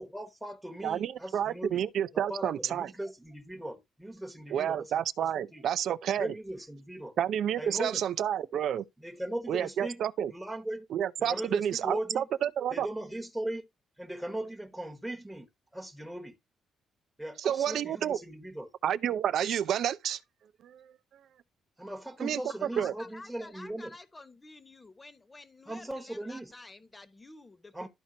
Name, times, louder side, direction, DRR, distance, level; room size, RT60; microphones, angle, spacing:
voice 1, 0.0-1.8 2.3-5.6 6.2-7.1 7.6-8.0 9.0-10.0 10.3-10.9 11.2-12.2 12.7-13.7 14.0-16.3 17.2-18.7 21.8-23.9 25.7-26.5 27.7-27.9, right 1 dB, 5° right, 1.2 m, -38 dB
voice 2, 0.8-2.9 4.5-6.3 7.2-8.8 9.5-10.3 10.9-12.9 17.4-18.2 18.8-20.2 20.6-20.9 22.2-22.4 22.8-22.9, right 9 dB, 70° right, 0.5 m, -30 dB
voice 3, 22.5-27.9, left 2 dB, 20° left, 1.2 m, -50 dB
12.5 x 4.4 x 2.8 m
cardioid pair, 90°, 0 cm